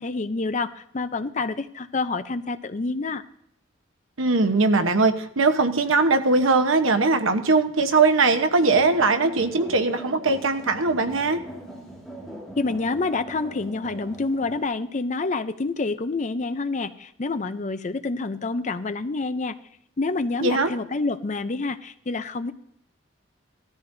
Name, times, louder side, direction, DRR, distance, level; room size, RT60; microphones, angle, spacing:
voice 1, 0.0-3.2 12.6-19.6 20.0-22.5, left 3 dB, 35° left, 11 dB, 0.5 m, -27 dB
voice 2, 4.2-11.4 20.4-20.7, right 3 dB, 80° right, 8 dB, 1.0 m, -20 dB
sound 1, 8.6-14.6, right 1 dB, ahead, 2.1 m, -40 dB
17.5 x 13.5 x 2.7 m, 0.74 s
head